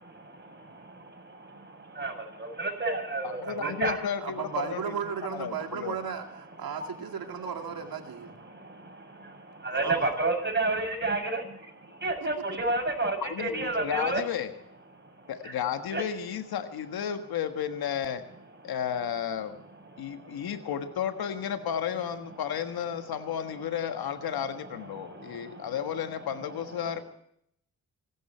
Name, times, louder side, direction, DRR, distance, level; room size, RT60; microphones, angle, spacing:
voice 1, 0.1-4.0 6.7-6.9 8.0-14.2 15.0-15.5 15.9-16.0 19.9-20.5 24.9-26.0 26.6-26.8, right 2 dB, 30° right, 4 dB, 7.5 m, -32 dB
voice 2, 3.2-6.0 13.2-14.5 15.3-18.2 18.6-19.6 20.0-27.0, left 9 dB, 85° left, 8 dB, 1.6 m, -33 dB
voice 3, 4.2-8.3 9.7-10.0 12.2-12.3, right 7 dB, 75° right, 5 dB, 2.2 m, -35 dB
25.0 x 13.0 x 4.4 m, 0.70 s
supercardioid pair, 45°, 36 cm